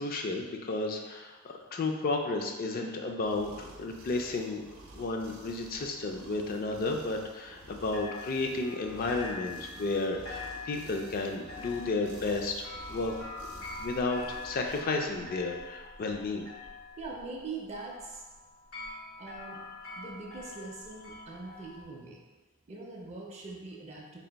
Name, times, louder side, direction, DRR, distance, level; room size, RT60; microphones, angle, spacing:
voice 1, 0.0-4.6 4.9-13.1 13.8-16.4, left 3 dB, 45° left, 3 dB, 0.4 m, -32 dB
sound 1, 3.2-14.8, right 2 dB, 75° right, 0.6 m, -51 dB
sound 2, 5.7-7.7 7.9-21.8, left 3 dB, 75° left, 1.5 m, -45 dB
voice 2, 17.0-18.2 19.2-19.6 20.0-22.2 22.7-24.2, right 3 dB, 30° right, -1 dB, 0.4 m, -42 dB
3.4 x 2.5 x 3.9 m, 1.2 s
head